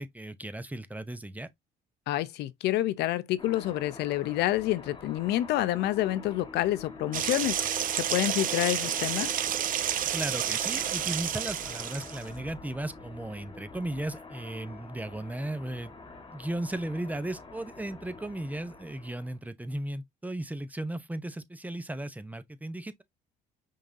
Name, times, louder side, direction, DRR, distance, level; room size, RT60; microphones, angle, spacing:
voice 1, 0.0-1.5 10.1-15.9 16.3-23.0, right 1 dB, 10° right, 0.7 m, -36 dB
voice 2, 2.1-9.3, left 14 dB, 80° left, 0.6 m, -28 dB
sound 1, 3.4-19.4, left 3 dB, 30° left, 1.5 m, -46 dB
sound 2, 7.1-12.2, right 10 dB, 55° right, 0.7 m, -30 dB
5.4 x 3.7 x 2.6 m
cardioid pair, 110°, 17 cm